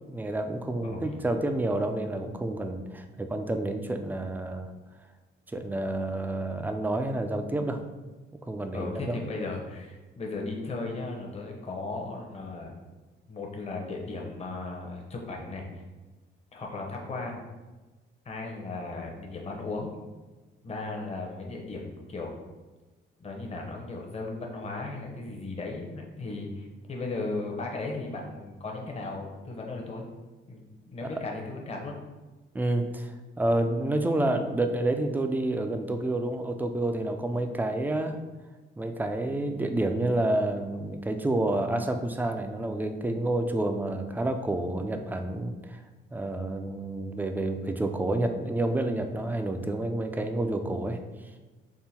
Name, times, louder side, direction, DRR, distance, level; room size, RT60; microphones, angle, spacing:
voice 1, 0.1-4.7 5.5-7.8 8.4-9.2 32.5-38.2 38.8-45.8 46.1-51.0, right 1 dB, 10° right, 6 dB, 0.3 m, -29 dB
voice 2, 0.8-1.2 8.7-12.7 13.3-15.8 16.5-17.4 18.3-19.9 20.6-22.4 23.2-30.0 30.5-30.6 30.9-31.9, left 3 dB, 30° left, 0 dB, 0.8 m, -36 dB
3.7 x 2.1 x 4.2 m, 1.2 s
cardioid pair, 90°, 20 cm